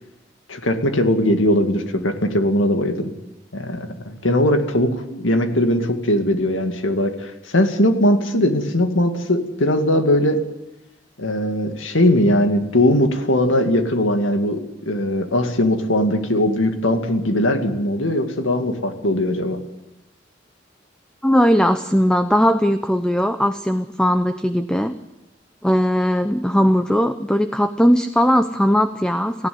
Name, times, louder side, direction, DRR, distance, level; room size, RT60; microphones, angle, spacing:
voice 1, 0.5-3.1 3.5-10.4 11.2-19.6, left 1 dB, 85° left, 7 dB, 2.2 m, -20 dB
voice 2, 21.2-24.9 25.6-29.5, equal, 5° left, 9 dB, 0.7 m, -18 dB
18.5 x 15.5 x 9.4 m, 0.96 s
head